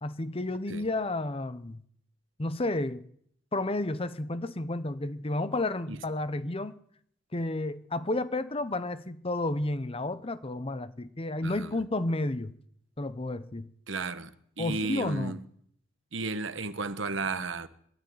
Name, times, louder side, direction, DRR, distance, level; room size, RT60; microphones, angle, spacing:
voice 1, 0.0-1.8 2.4-3.0 3.5-6.8 7.3-12.5 13.0-13.7 14.6-15.4, left 2 dB, 30° left, 0.9 m, -31 dB
voice 2, 13.9-14.3 14.6-15.4 16.1-17.7, right 3 dB, 70° right, 1.4 m, -33 dB
22.0 x 12.5 x 9.5 m
head